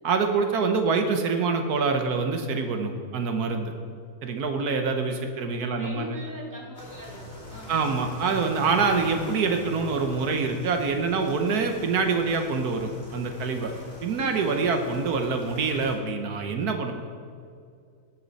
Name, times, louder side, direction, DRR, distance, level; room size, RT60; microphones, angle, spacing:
voice 1, 0.0-3.7 4.2-6.2 7.7-13.7 14.0-16.9, right 4 dB, 85° right, 5 dB, 1.5 m, -25 dB
voice 2, 5.4-8.2 14.2-14.4, equal, 10° right, -4 dB, 2.2 m, -41 dB
sound 1, 6.7-15.9, left 1 dB, 45° left, 3.1 m, -43 dB
18.5 x 7.5 x 4.1 m, 2.3 s
omnidirectional pair, 1.6 m